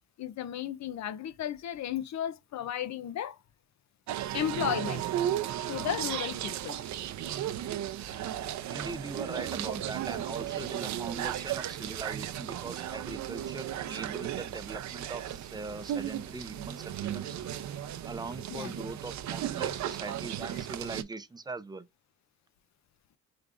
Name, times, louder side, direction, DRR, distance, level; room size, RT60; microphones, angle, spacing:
voice 1, 0.2-3.4 4.3-5.0 5.7-6.8 18.5-18.7, left 10 dB, 65° left, 0.7 m, -34 dB
sound 1, 4.1-21.0, right 11 dB, 70° right, 0.6 m, -35 dB
sound 2, 5.6-6.2 6.5-7.4 8.0-9.0 9.5-10.5 10.9-11.4 11.7-12.3 12.7-14.5 15.3-16.3 16.6-18.1, left 1 dB, 45° left, 3.0 m, -60 dB
voice 2, 8.7-17.4 18.0-21.9, right 3 dB, 15° right, 0.6 m, -41 dB
5.2 x 3.4 x 2.5 m
cardioid pair, 90°, 30 cm